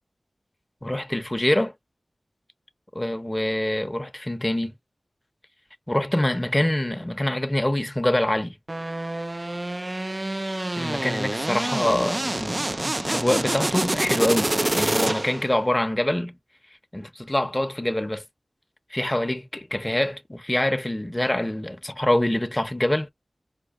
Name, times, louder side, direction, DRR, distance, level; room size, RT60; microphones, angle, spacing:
voice 1, 0.8-1.7 2.9-4.7 5.9-8.6 10.8-16.4 16.9-18.2 18.9-23.1, left 1 dB, 20° left, 0.6 m, -25 dB
sound 1, 8.7-15.5, right 1 dB, 35° right, 0.3 m, -27 dB
5.0 x 2.1 x 2.3 m
wide cardioid pair, 40°, 0 cm